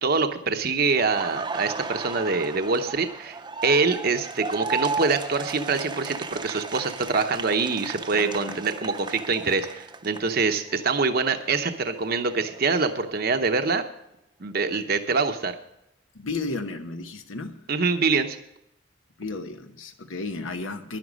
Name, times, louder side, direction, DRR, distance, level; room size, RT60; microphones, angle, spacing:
voice 1, 0.0-3.4 3.6-13.8 14.4-15.5 17.7-18.4, right 4 dB, 50° right, 7 dB, 0.8 m, -25 dB
Laughter, 1.0-10.8 11.1-13.1, right 3 dB, 25° right, 0.7 m, -35 dB
voice 2, 8.1-8.6 16.1-17.6 19.2-21.0, left 3 dB, 85° left, 7 dB, 1.0 m, -33 dB
11.0 x 11.0 x 5.3 m, 0.81 s
head